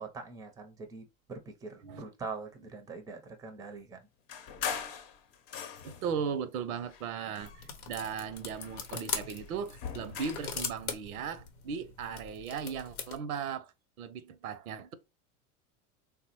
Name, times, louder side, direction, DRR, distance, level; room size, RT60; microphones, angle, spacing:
voice 1, 0.0-4.1, right 4 dB, 10° right, 0.5 m, -43 dB
sound 1, 4.3-6.2 6.8-8.0 8.3-10.6, left 7 dB, 50° left, 0.8 m, -41 dB
voice 2, 5.8-13.7 14.0-14.9, right 6 dB, 80° right, 0.6 m, -37 dB
sound 2, 7.4-13.2, left 6 dB, 85° left, 0.8 m, -41 dB
3.5 x 2.1 x 2.9 m
hypercardioid pair, 95°, 42 cm